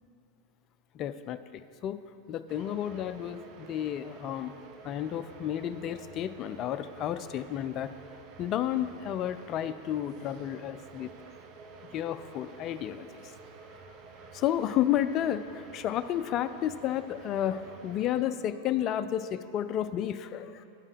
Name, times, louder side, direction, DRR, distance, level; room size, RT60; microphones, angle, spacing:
voice 1, 0.9-2.0 2.3-4.6 4.8-7.9 8.4-11.1 11.9-13.2 14.3-20.6, left 11 dB, 35° left, 12 dB, 0.4 m, -32 dB
sound 1, 2.5-18.2, right 4 dB, 40° right, 0.7 m, -50 dB
9.8 x 5.4 x 6.3 m, 2.6 s
figure-of-eight pair, 90°, 0 cm